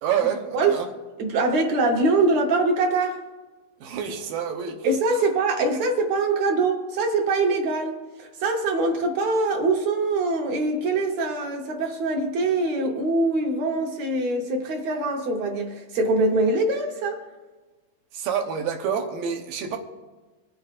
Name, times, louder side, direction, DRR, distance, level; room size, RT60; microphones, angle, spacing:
voice 1, 0.0-0.9 3.8-4.9 18.1-19.8, right 8 dB, 85° right, 2.7 m, -27 dB
voice 2, 1.2-3.2 4.8-17.2, right 2 dB, 65° right, 2.1 m, -23 dB
25.5 x 9.0 x 2.5 m
omnidirectional pair, 3.9 m